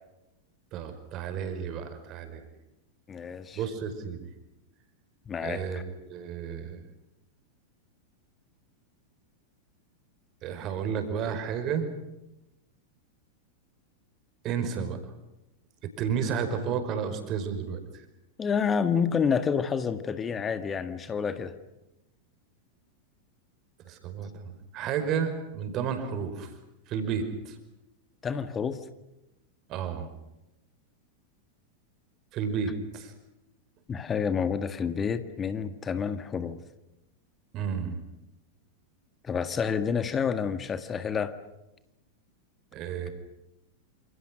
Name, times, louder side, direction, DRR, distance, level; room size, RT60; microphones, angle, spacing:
voice 1, 0.7-2.4 3.5-4.2 5.4-6.8 10.4-11.9 14.4-15.0 16.0-18.1 23.9-26.5 26.9-27.6 29.7-30.1 32.3-33.1 37.5-38.0 42.7-43.1, right 7 dB, 35° right, 8 dB, 5.2 m, -32 dB
voice 2, 3.1-3.6 5.3-5.8 18.4-21.5 28.2-28.8 33.9-36.6 39.2-41.3, left 6 dB, 20° left, 11 dB, 1.7 m, -29 dB
28.5 x 28.0 x 6.4 m, 0.94 s
figure-of-eight pair, 90°, 0 cm